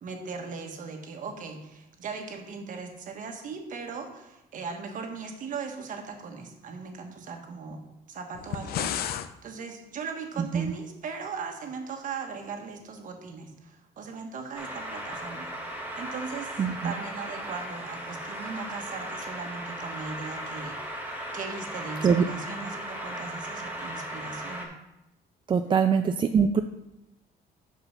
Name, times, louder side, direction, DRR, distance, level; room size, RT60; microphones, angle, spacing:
voice 1, 0.0-7.8 8.1-20.9 21.3-24.7 25.6-25.8, right 5 dB, 50° right, 3 dB, 1.4 m, -39 dB
sound 1, 8.3-9.3, left 10 dB, 65° left, 0.5 m, -31 dB
sound 2, 14.5-24.6, right 1 dB, 10° right, 1.6 m, -37 dB
voice 2, 16.6-16.9 22.0-22.2 25.5-26.6, right 6 dB, 30° right, 7 dB, 0.4 m, -23 dB
6.1 x 5.6 x 5.7 m, 0.90 s
cardioid pair, 110°, 17 cm